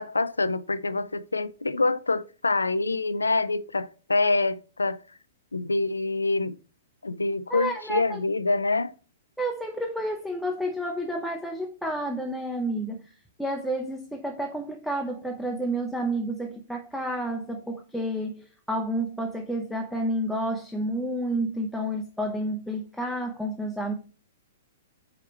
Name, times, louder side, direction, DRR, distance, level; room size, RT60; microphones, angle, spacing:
voice 1, 0.0-5.0 5.5-6.6 7.0-8.9, left 3 dB, 80° left, 0.4 m, -26 dB
voice 2, 7.5-8.2 9.4-23.9, right 1 dB, ahead, 0.6 m, -30 dB
5.0 x 4.5 x 4.3 m
figure-of-eight pair, 110°, 0 cm